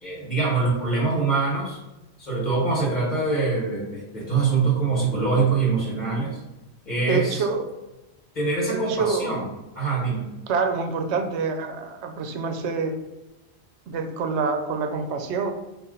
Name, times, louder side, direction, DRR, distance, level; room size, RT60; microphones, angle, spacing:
voice 1, 0.0-1.8 2.2-6.4 6.8-7.4 8.3-9.4 9.7-10.3, right 4 dB, 45° left, -4 dB, 1.2 m, -24 dB
voice 2, 7.1-7.6 8.6-9.4 10.5-12.9 13.9-15.5, right 4 dB, 90° right, 6 dB, 0.9 m, -26 dB
4.1 x 2.5 x 3.8 m, 1.0 s
omnidirectional pair, 1.1 m